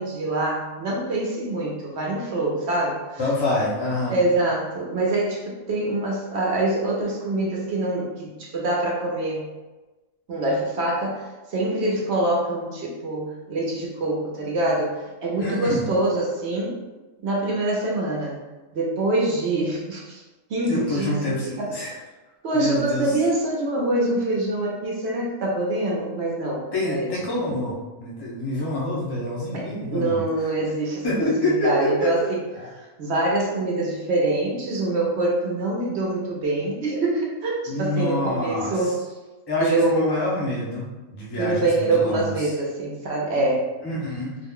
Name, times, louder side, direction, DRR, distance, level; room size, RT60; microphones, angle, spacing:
voice 1, 0.0-3.3 4.1-9.5 10.3-16.8 17.2-18.4 18.7-20.2 20.5-21.7 22.4-27.1 29.5-39.0 39.6-40.2 41.4-43.7, right 2 dB, 60° right, -2 dB, 0.8 m, -25 dB
voice 2, 3.2-4.2 15.4-15.8 20.6-21.9 22.5-23.1 26.7-30.2 31.0-32.1 32.6-32.7 37.7-38.9 39.5-42.2 43.8-44.4, left 1 dB, 25° left, -5 dB, 0.5 m, -26 dB
2.4 x 2.1 x 3.6 m, 1.2 s
omnidirectional pair, 1.4 m